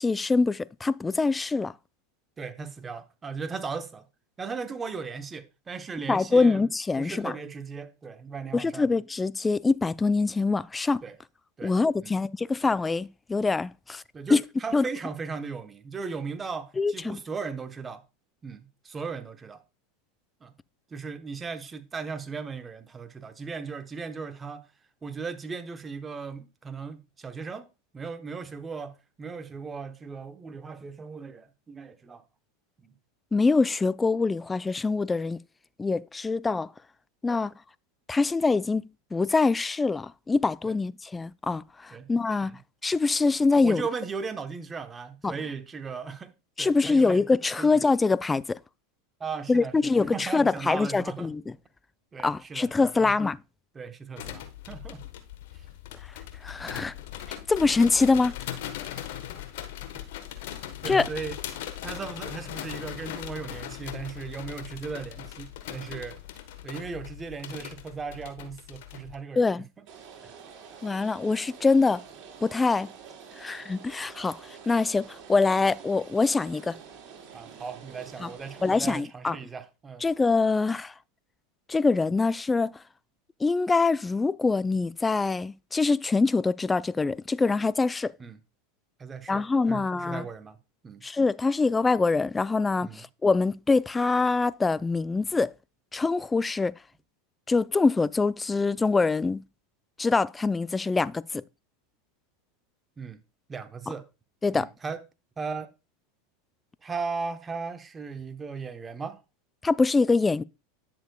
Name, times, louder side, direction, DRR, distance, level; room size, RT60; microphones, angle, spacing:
voice 1, 0.0-1.7 6.1-7.3 8.5-11.0 11.6-14.0 14.3-14.4 14.7-14.8 16.8-17.2 33.3-35.4 35.8-36.7 37.2-37.5 38.1-43.8 45.2-45.3 46.6-48.6 49.5-51.5 52.2-53.4 56.4-56.9 57.3-58.3 60.9-61.1 69.4-69.6 70.8-72.0 72.4-72.9 73.4-74.4 74.7-76.7 78.2-78.3 78.6-79.4 80.0-80.9 81.7-82.7 83.4-88.1 89.3-90.2 91.0-95.5 95.9-96.7 97.5-99.4 100.0-101.4 104.4-104.7 109.6-110.4, left 3 dB, 15° left, 0.3 m, -24 dB
voice 2, 2.4-4.1 4.4-6.7 7.0-8.9 11.0-11.2 11.6-12.1 14.1-18.0 18.4-19.6 20.4-20.5 20.9-24.7 25.0-27.7 27.9-32.2 32.8-32.9 37.2-37.4 40.6-40.7 41.9-42.1 42.4-42.6 43.6-46.3 46.6-47.2 47.6-47.8 49.2-51.3 52.1-52.7 52.9-53.1 53.7-55.0 59.0-59.1 59.9-60.0 60.8-61.4 61.8-66.2 66.6-69.8 70.2-70.4 77.3-80.0 88.2-88.4 89.0-90.6 90.8-91.0 92.8-93.0 103.0-103.2 103.5-104.1 104.5-105.0 105.4-105.7 106.8-109.2, right 5 dB, 20° right, 0.9 m, -37 dB
sound 1, 54.2-69.1, left 11 dB, 70° left, 1.1 m, -39 dB
Rain, 69.9-79.0, right 6 dB, 50° right, 4.1 m, -47 dB
10.5 x 6.8 x 2.2 m
hypercardioid pair, 105°, 0 cm